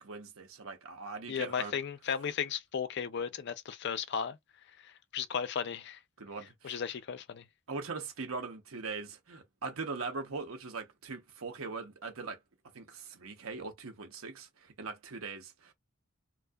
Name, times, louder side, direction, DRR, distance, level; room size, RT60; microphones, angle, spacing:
voice 1, 0.0-1.8 6.2-6.8 7.7-12.4 12.7-15.7, right 4 dB, 80° right, 0.8 m, -41 dB
voice 2, 1.3-4.4 4.8-6.0 6.6-7.4, left 7 dB, 55° left, 0.4 m, -35 dB
2.7 x 2.0 x 2.3 m
head